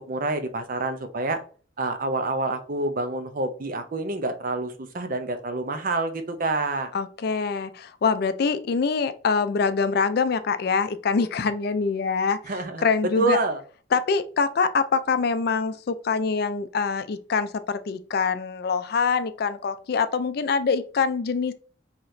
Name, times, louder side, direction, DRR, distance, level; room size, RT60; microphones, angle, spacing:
voice 1, 0.1-1.4 1.8-6.9 12.4-12.8 13.2-13.6, right 2 dB, 45° right, 7 dB, 0.6 m, -27 dB
voice 2, 6.9-12.4 12.8-13.4 13.9-21.5, left 5 dB, 55° left, 12 dB, 0.4 m, -24 dB
4.0 x 2.9 x 3.1 m, 0.41 s
head